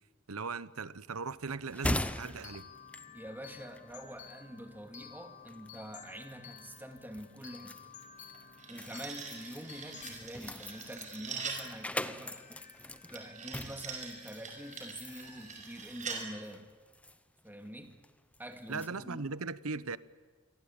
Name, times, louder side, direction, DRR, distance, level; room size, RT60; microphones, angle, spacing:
voice 1, 0.3-2.7 9.9-10.0 18.7-20.0, right 4 dB, 85° right, 1.0 m, -38 dB
sound 1, 1.1-18.9, left 1 dB, 5° left, 0.8 m, -42 dB
sound 2, 2.0-15.5, left 6 dB, 35° left, 4.6 m, -54 dB
voice 2, 3.1-7.8 8.7-12.4 13.1-16.7 17.4-17.9 18.4-19.3, equal, 10° right, 2.3 m, -46 dB
sound 3, 8.3-11.7 13.1-16.2, right 5 dB, 35° right, 5.6 m, -43 dB
28.0 x 23.5 x 8.8 m
head